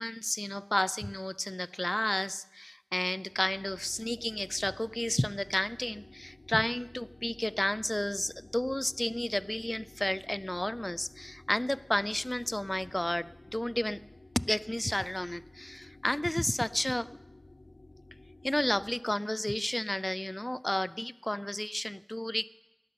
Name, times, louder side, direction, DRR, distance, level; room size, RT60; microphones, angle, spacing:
voice 1, 0.0-14.0 14.4-17.1 18.4-22.5, left 1 dB, 20° left, 19 dB, 0.4 m, -32 dB
sound 1, 3.2-19.0, left 2 dB, 60° left, 0.9 m, -54 dB
18.5 x 12.0 x 6.0 m, 0.97 s
wide cardioid pair, 45°, 0 cm